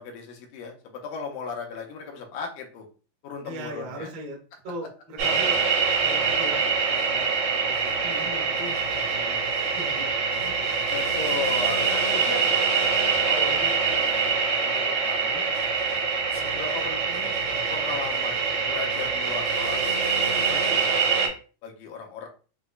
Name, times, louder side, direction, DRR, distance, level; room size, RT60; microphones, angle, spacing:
voice 1, 0.0-2.9 3.2-4.1 10.9-12.5 13.2-14.3 14.6-15.5 16.3-17.4 17.7-20.9 21.6-22.3, left 5 dB, 80° left, 2 dB, 2.2 m, -36 dB
voice 2, 3.4-4.4 4.6-5.6 6.0-6.6 6.9-8.8 9.1-9.4 9.7-10.7, right 1 dB, 85° right, 0 dB, 1.0 m, -39 dB
sound 1, 5.2-21.3, right 5 dB, 70° right, 1.6 m, -24 dB
5.9 x 2.1 x 2.3 m, 0.36 s
omnidirectional pair, 3.8 m